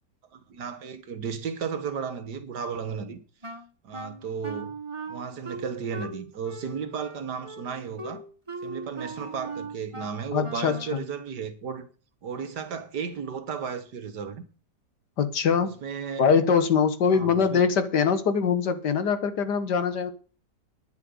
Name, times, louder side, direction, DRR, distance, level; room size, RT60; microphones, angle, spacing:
voice 1, 0.3-3.2 3.8-4.7 5.1-8.2 8.6-11.9 12.2-14.4 15.8-16.2 17.1-17.6, right 6 dB, 70° right, 2.0 m, -34 dB
Wind instrument woodwind instrument, 3.4-11.0, right 3 dB, 20° right, 1.3 m, -39 dB
voice 2, 10.3-11.0 15.2-15.7 16.2-20.1, left 6 dB, 75° left, 2.0 m, -23 dB
10.0 x 7.5 x 9.5 m
omnidirectional pair, 1.8 m